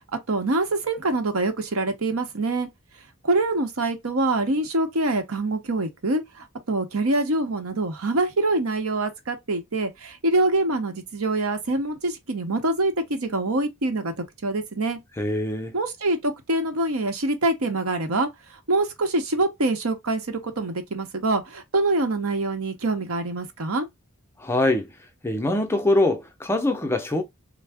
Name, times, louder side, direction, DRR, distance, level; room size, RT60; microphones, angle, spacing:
voice 1, 0.3-2.7 3.2-14.1 14.4-15.0 15.7-18.3 18.7-23.9, right 2 dB, 75° right, 0.8 m, -25 dB
voice 2, 15.2-15.8 24.4-24.9 25.2-27.2, left 2 dB, 10° left, 0.5 m, -23 dB
3.5 x 2.1 x 3.3 m
head